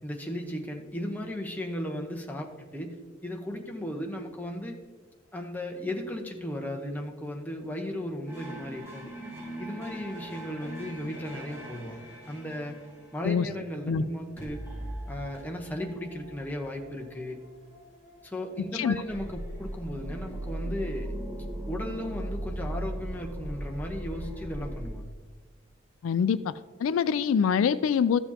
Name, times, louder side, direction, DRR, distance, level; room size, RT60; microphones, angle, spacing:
voice 1, 0.0-2.9 3.2-4.8 5.3-9.1 9.6-12.8 13.1-14.6 15.0-17.4 18.2-21.2 21.7-25.1, left 1 dB, 10° left, 1 dB, 0.9 m, -36 dB
sound 1, 8.3-14.0 14.4-24.9, right 1 dB, 10° right, 2.3 m, -39 dB
voice 2, 26.0-26.5 26.8-28.2, left 7 dB, 80° left, 15 dB, 0.3 m, -24 dB
13.5 x 6.9 x 2.9 m, 1.3 s
head